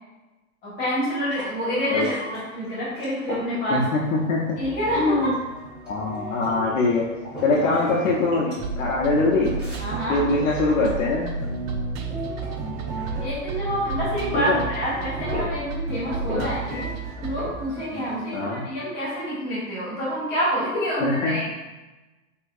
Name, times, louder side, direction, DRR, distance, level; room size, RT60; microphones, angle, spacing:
voice 1, 0.6-3.8 4.6-5.3 7.5-7.9 9.8-10.2 13.2-16.9 17.2-21.4, equal, 25° left, -8 dB, 1.3 m, -27 dB
sound 1, 0.8-18.7, equal, ahead, 1.3 m, -41 dB
voice 2, 3.7-4.6 4.9-5.3 5.8-7.1 7.4-9.6 10.1-11.3 14.3-14.6 16.3-16.5 18.3-18.6 21.0-21.4, left 3 dB, 65° left, -3 dB, 0.6 m, -23 dB
sound 2, 4.6-18.2, right 1 dB, 40° right, 0.9 m, -37 dB
sound 3, 8.6-17.5, right 4 dB, 70° right, 0.6 m, -32 dB
3.5 x 2.8 x 2.4 m, 1.1 s
supercardioid pair, 155°, 42 cm